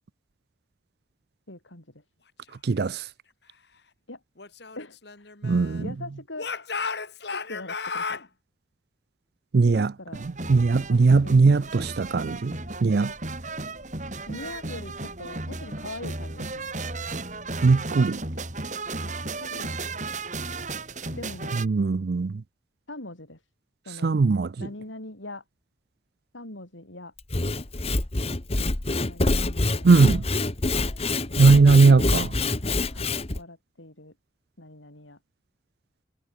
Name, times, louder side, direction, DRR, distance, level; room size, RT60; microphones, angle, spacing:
voice 1, 1.5-2.0 4.1-4.2 4.8-5.3 5.8-6.5 7.3-8.2 9.6-10.2 10.5-11.7 14.3-16.7 19.0-19.7 21.1-21.7 22.9-23.4 23.9-24.2 24.6-25.4 26.3-27.1 29.1-29.9 32.9-34.1 34.6-35.2, left 2 dB, 90° left, 6.0 m, -42 dB
voice 2, 2.6-3.0 5.4-5.8 9.5-9.9 10.5-12.5 12.8-13.1 17.6-18.2 21.6-22.3 24.0-24.5 29.8-30.2 31.4-32.3, right 4 dB, 55° right, 0.4 m, -19 dB
Speech / Shout, 4.4-5.9 6.4-8.3, left 4 dB, 60° left, 2.1 m, -34 dB
sound 1, 10.1-21.7, right 3 dB, 40° right, 4.5 m, -35 dB
Sawing / Wood, 27.2-33.4, left 2 dB, 30° left, 1.2 m, -26 dB
head